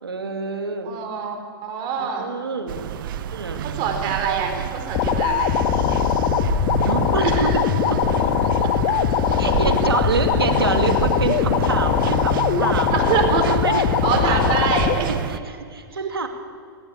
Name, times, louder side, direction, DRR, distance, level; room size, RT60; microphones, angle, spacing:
voice 1, 0.0-1.0 2.0-2.9 3.3-3.6 6.8-7.6 7.9-8.0 9.4-12.9 13.5-13.8 14.3-14.4 15.1-16.3, right 4 dB, 90° right, 6 dB, 2.4 m, -26 dB
voice 2, 0.8-2.3 3.6-5.6 7.2-7.6 8.6-8.7 12.9-13.4 14.0-15.1, right 6 dB, 40° right, 4 dB, 4.6 m, -25 dB
sound 1, 2.7-15.4, right 10 dB, 65° right, 0.9 m, -29 dB
sound 2, 4.9-14.9, left 9 dB, 45° left, 1.6 m, -21 dB
19.5 x 17.5 x 8.5 m, 2.3 s
hypercardioid pair, 110°, 12 cm